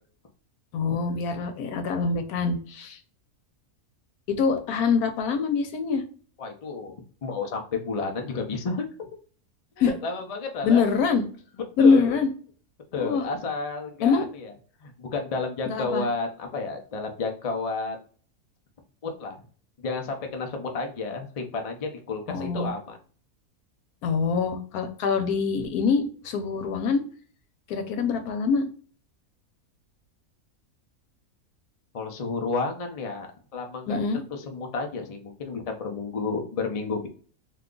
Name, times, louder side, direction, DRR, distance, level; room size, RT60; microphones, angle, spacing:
voice 1, 0.7-3.0 4.3-6.0 9.8-9.9 10.6-11.2 11.8-12.3 13.0-13.3 14.0-14.2 15.7-16.1 22.3-22.7 24.0-27.0 27.7-28.7 33.9-34.2, left 5 dB, 90° left, 6 dB, 1.2 m, -24 dB
voice 2, 6.4-6.9 7.2-9.1 9.8-10.8 11.8-12.2 12.9-14.5 14.8-18.0 19.0-19.4 19.8-23.0 31.9-33.3 33.5-37.1, left 4 dB, 55° left, 3 dB, 0.4 m, -31 dB
2.7 x 2.3 x 3.7 m, 0.43 s
omnidirectional pair, 1.5 m